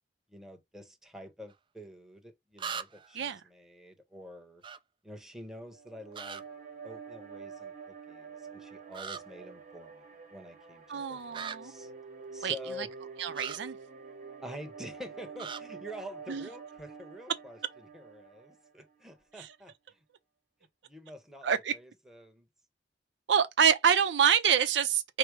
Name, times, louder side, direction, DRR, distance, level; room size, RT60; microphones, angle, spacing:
voice 1, 0.3-4.6 5.0-6.4 6.8-11.9 12.3-12.9 14.4-20.0 20.9-22.5, equal, 5° right, 0.9 m, -47 dB
sound 1, 1.5-1.6 2.6-3.2 4.6-4.8 6.1-6.4 8.9-9.2 11.3-11.6 13.3-13.6 15.4-15.6, right 6 dB, 30° right, 0.4 m, -39 dB
sound 2, 5.6-19.0, right 5 dB, 45° right, 1.2 m, -48 dB
voice 2, 10.9-11.7 12.4-12.9 13.2-13.8 16.3-16.5 19.4-19.5 21.4-21.7 23.3-25.2, right 8 dB, 85° right, 0.5 m, -26 dB
4.9 x 2.0 x 4.5 m
head